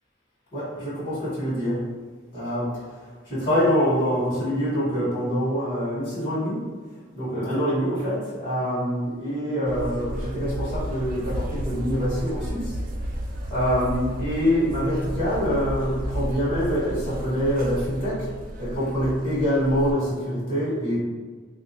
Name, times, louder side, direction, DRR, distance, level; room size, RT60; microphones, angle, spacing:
voice 1, 0.5-1.8 2.3-2.7 3.3-6.6 7.1-12.7 13.5-18.3 18.6-21.0, equal, 45° left, -8 dB, 1.2 m, -25 dB
sound 1, 9.7-19.9, equal, 45° right, 0.4 m, -33 dB
3.4 x 2.5 x 2.9 m, 1.4 s
head